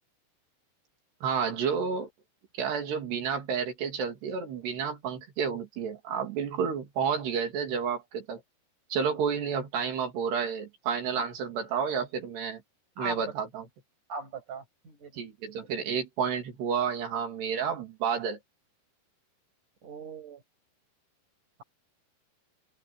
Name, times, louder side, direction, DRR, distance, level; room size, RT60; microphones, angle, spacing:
voice 1, 1.2-2.1 2.6-8.4 8.9-12.6 13.0-13.7 15.1-18.4, right 6 dB, 80° right, 5.2 m, -30 dB
voice 2, 13.0-13.3 14.1-15.3 19.8-20.4, right 3 dB, 50° right, 9.3 m, -39 dB
open air
omnidirectional pair, 4.7 m